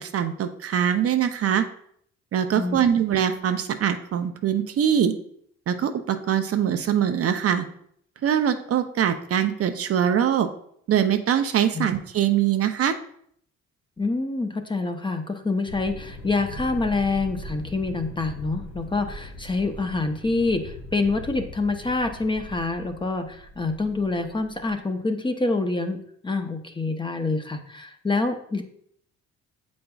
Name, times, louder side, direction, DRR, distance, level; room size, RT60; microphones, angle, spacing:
voice 1, 0.0-1.6 2.3-5.1 5.7-7.6 8.2-10.5 10.9-12.9, right 9 dB, 50° right, 8 dB, 0.5 m, -23 dB
voice 2, 14.0-28.6, left 3 dB, 15° left, 6 dB, 0.6 m, -26 dB
sound 1, 15.7-24.7, equal, 65° left, 1.6 m, -40 dB
7.7 x 5.2 x 2.3 m, 0.66 s
cardioid pair, 90°, 30 cm